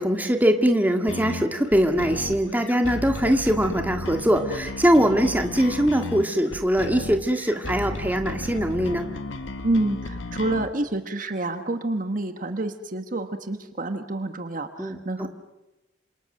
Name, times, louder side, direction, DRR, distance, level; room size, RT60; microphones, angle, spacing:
voice 1, 0.0-9.1 14.8-15.3, equal, 10° right, 5 dB, 1.8 m, -22 dB
sound 1, 1.1-10.7, left 2 dB, 80° left, 1.5 m, -34 dB
voice 2, 9.6-15.3, right 2 dB, 40° right, 8 dB, 1.3 m, -28 dB
27.5 x 27.0 x 6.6 m, 1.0 s
head